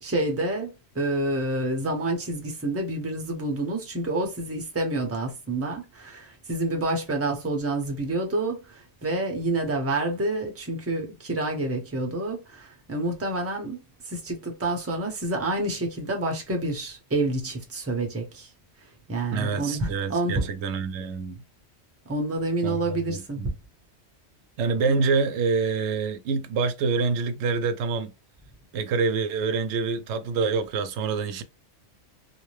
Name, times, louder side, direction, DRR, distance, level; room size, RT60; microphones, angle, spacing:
voice 1, 0.0-13.8 14.0-18.5 19.1-20.5 22.1-23.5 24.9-25.0, right 2 dB, 15° right, 0.6 m, -28 dB
voice 2, 19.3-21.4 22.6-22.8 23.1-23.5 24.6-28.1 28.7-31.4, right 5 dB, 90° right, 0.9 m, -26 dB
2.7 x 2.2 x 3.1 m
omnidirectional pair, 1.1 m